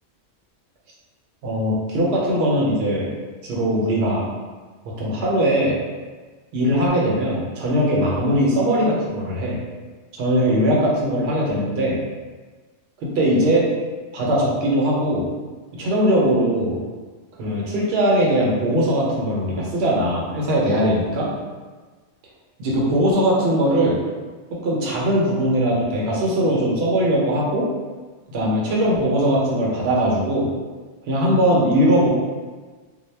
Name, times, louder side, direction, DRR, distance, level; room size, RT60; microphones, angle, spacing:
voice 1, 1.4-3.1 3.4-4.2 4.8-5.8 6.5-9.6 10.2-12.0 13.0-13.7 14.1-15.2 15.7-16.8 17.4-21.3 22.6-24.0 24.5-27.7 28.3-30.5 31.1-32.1, equal, 60° right, -4 dB, 0.9 m, -20 dB
2.2 x 2.1 x 3.2 m, 1.4 s
omnidirectional pair, 1.3 m